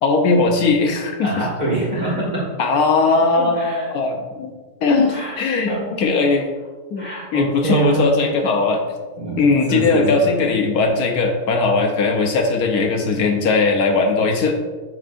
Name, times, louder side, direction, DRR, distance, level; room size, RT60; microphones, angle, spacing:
voice 1, 0.0-1.5 2.6-4.5 4.8-6.5 6.9-8.8 9.4-14.6, left 3 dB, 65° left, 3 dB, 1.1 m, -19 dB
voice 2, 1.2-2.5 3.4-3.9 5.0-5.4 5.7-6.0 7.0-8.1 9.2-10.2, right 2 dB, 25° right, -6 dB, 1.7 m, -24 dB
10.5 x 4.4 x 2.5 m, 1.4 s
omnidirectional pair, 2.0 m